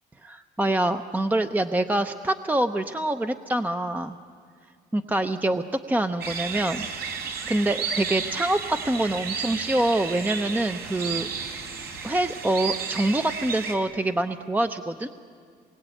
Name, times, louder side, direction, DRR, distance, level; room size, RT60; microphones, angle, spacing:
voice 1, 0.2-4.2 4.9-7.1 7.5-11.3 12.0-15.1, right 1 dB, 10° right, 8 dB, 0.7 m, -25 dB
sound 1, 6.2-13.8, right 6 dB, 70° right, 3.9 m, -33 dB
27.5 x 22.5 x 9.1 m, 2.2 s
cardioid pair, 110°, 17 cm